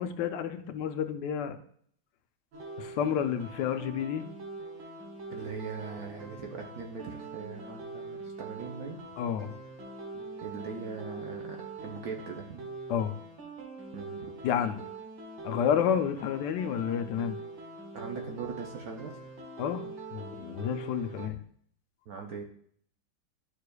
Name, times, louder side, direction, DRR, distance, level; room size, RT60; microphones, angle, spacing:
voice 1, 0.0-1.6 2.8-4.3 9.2-9.5 12.9-13.1 14.4-14.9 15.4-17.4 19.6-21.4, left 8 dB, 75° left, 8 dB, 1.2 m, -30 dB
sound 1, 2.5-21.3, right 3 dB, 90° right, 1.8 m, -43 dB
voice 2, 5.3-9.0 10.4-12.6 13.9-14.3 17.9-19.2 22.1-22.4, right 5 dB, 65° right, 1 dB, 1.1 m, -40 dB
11.0 x 4.8 x 2.3 m, 0.62 s
omnidirectional pair, 2.0 m